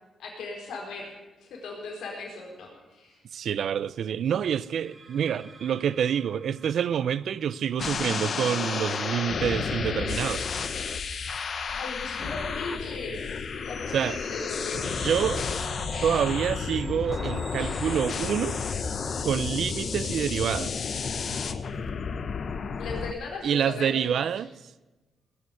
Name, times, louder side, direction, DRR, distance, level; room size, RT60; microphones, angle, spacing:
voice 1, 0.2-1.1 1.4-3.2 11.8-15.1 22.8-24.3, left 3 dB, 85° left, 4.2 m, -38 dB
sound 1, 2.7-3.0 4.5-9.3 10.1-20.6, right 3 dB, 40° right, 2.7 m, -49 dB
voice 2, 3.3-10.5 13.9-14.2 15.0-15.4 16.0-18.6 19.2-20.8 23.4-24.5, right 8 dB, 70° right, 0.5 m, -27 dB
sound 2, 7.8-23.1, left 5 dB, 55° left, 0.9 m, -31 dB
sound 3, 15.9-22.0, left 3 dB, 30° left, 0.8 m, -42 dB
19.5 x 7.2 x 9.3 m
cardioid pair, 90°, 0 cm